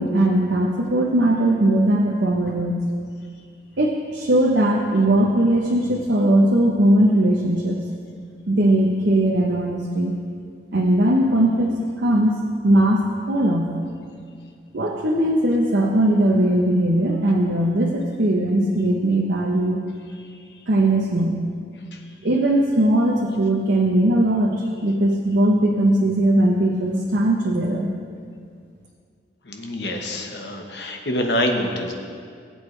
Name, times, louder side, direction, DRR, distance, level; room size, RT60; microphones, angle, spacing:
voice 1, 0.0-2.8 3.8-7.8 8.5-10.1 10.7-13.7 14.7-19.8 20.7-21.4 22.2-27.9, right 1 dB, 90° right, -1 dB, 1.0 m, -19 dB
voice 2, 29.4-31.9, left 1 dB, 70° left, 3 dB, 1.2 m, -26 dB
19.0 x 8.1 x 3.3 m, 2.2 s
head